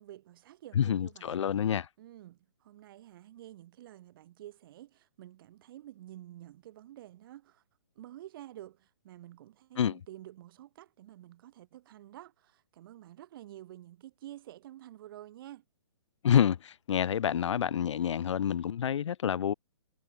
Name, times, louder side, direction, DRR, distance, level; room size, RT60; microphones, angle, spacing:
voice 1, 0.0-1.4 2.0-7.6 7.9-15.6, right 13 dB, 45° right, 4.3 m, -50 dB
voice 2, 0.8-1.9 9.8-9.9 16.2-19.5, left 9 dB, 70° left, 0.4 m, -28 dB
hypercardioid pair, 135°, 16 cm